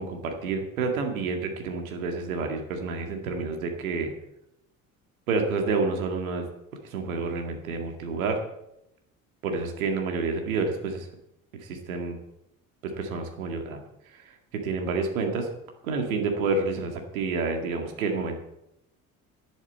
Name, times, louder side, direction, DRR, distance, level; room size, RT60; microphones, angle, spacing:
voice 1, 0.0-4.1 5.3-6.5 6.8-8.4 9.4-11.1 11.6-12.2 12.8-13.8 14.1-15.5 15.8-18.4, right 4 dB, 80° right, 3 dB, 2.1 m, -29 dB
10.5 x 8.4 x 8.2 m, 0.84 s
figure-of-eight pair, 55°, 42 cm